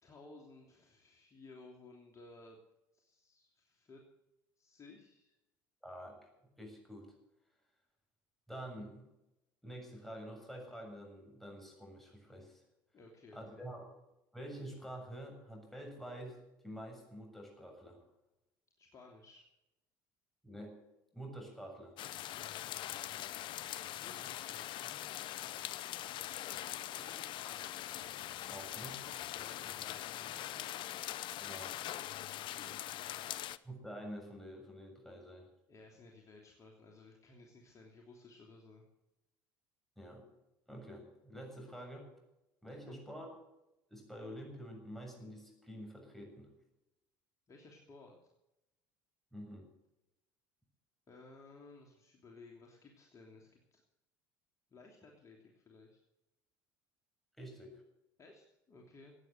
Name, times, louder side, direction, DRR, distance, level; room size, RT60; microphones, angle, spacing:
voice 1, 0.0-2.6 2.9-4.0 4.6-5.4 12.9-13.6 18.8-19.4 24.0-24.9 26.9-27.4 29.2-30.7 32.3-33.4 35.7-38.8 42.8-43.0 47.5-48.1 51.1-53.8 54.7-56.0 58.2-59.1, left 3 dB, 35° left, 0 dB, 3.1 m, -57 dB
voice 2, 5.8-6.2 6.6-7.1 8.5-9.1 9.6-12.6 13.3-13.8 14.3-18.0 20.4-20.8 21.1-22.0 28.5-29.0 31.4-31.7 33.6-35.5 40.0-40.2 40.7-42.1 42.6-43.3 43.9-46.5 49.3-49.7 57.4-57.8, equal, 5° left, 1 dB, 7.4 m, -48 dB
sound 1, 22.0-33.6, left 13 dB, 55° left, 0.7 m, -42 dB
16.5 x 9.4 x 7.9 m, 0.93 s
hypercardioid pair, 80°, 10 cm